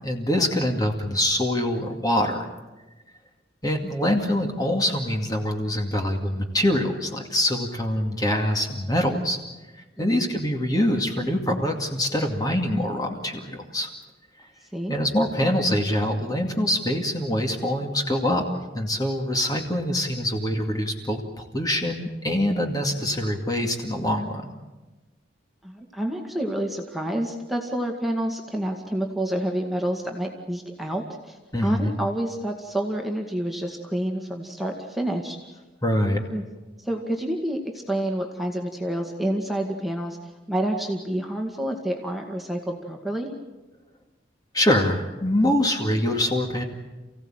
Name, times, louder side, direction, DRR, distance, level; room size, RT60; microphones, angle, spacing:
voice 1, 0.0-2.4 3.6-9.4 10.0-13.9 14.9-18.4 18.7-24.5 31.5-31.9 35.8-36.2 44.5-46.6, left 1 dB, 20° left, 3 dB, 2.3 m, -24 dB
voice 2, 10.0-10.3 14.7-14.9 25.6-35.4 36.3-36.4 36.8-43.3, right 1 dB, ahead, 1 dB, 2.1 m, -28 dB
29.0 x 16.5 x 9.0 m, 1.1 s
head